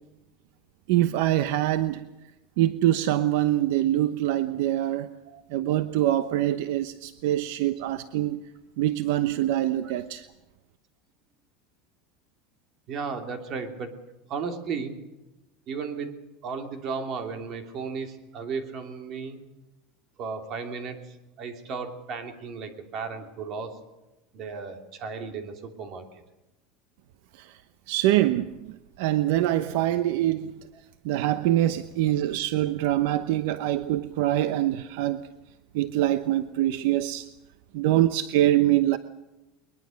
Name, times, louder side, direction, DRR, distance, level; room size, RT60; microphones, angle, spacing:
voice 1, 0.9-2.1 2.6-5.1 5.5-8.5 8.8-10.2 27.3-27.6 27.9-30.5 31.0-35.2 35.7-37.3 37.7-39.0, right 13 dB, 65° right, 12 dB, 0.9 m, -24 dB
voice 2, 12.9-13.9 14.3-14.9 15.7-16.1 16.4-19.4 20.2-21.0 21.4-23.7 24.3-26.0, right 5 dB, 35° right, 6 dB, 3.0 m, -34 dB
22.0 x 21.5 x 6.5 m, 1.0 s
supercardioid pair, 170°, 0 cm